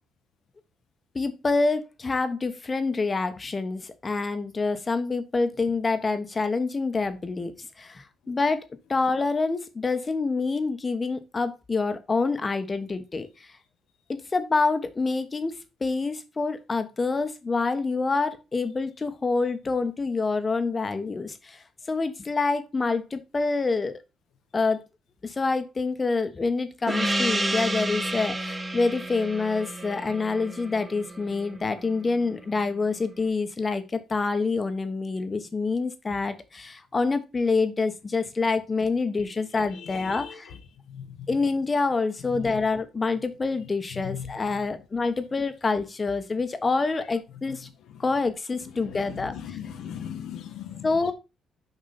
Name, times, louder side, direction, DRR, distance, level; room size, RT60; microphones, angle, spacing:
voice 1, 1.1-13.5 14.1-24.0 24.5-24.8 25.2-40.5 41.3-47.7 48.0-49.4 50.8-51.1, left 3 dB, 30° left, 1.2 m, -27 dB
Gong, 26.9-31.9, right 1 dB, 15° right, 1.2 m, -30 dB
voice 2, 39.7-40.6 40.9-41.3 42.3-42.5 43.9-44.6 47.5-47.6 47.9-48.0 48.6-51.1, left 8 dB, 80° left, 1.2 m, -39 dB
6.6 x 5.2 x 4.2 m
cardioid pair, 90°, 0 cm